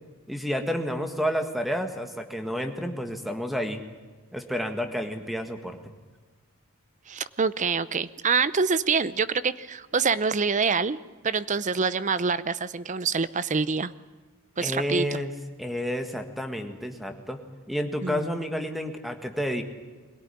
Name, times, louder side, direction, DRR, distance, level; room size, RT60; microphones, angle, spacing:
voice 1, 0.3-3.8 4.3-5.9 14.6-15.3 15.6-17.4 17.7-19.6, equal, ahead, 6 dB, 1.7 m, -30 dB
voice 2, 7.1-11.0 11.2-13.9 14.6-15.2 18.0-18.5, right 5 dB, 35° right, 16 dB, 0.6 m, -26 dB
22.5 x 17.5 x 9.9 m, 1.4 s
head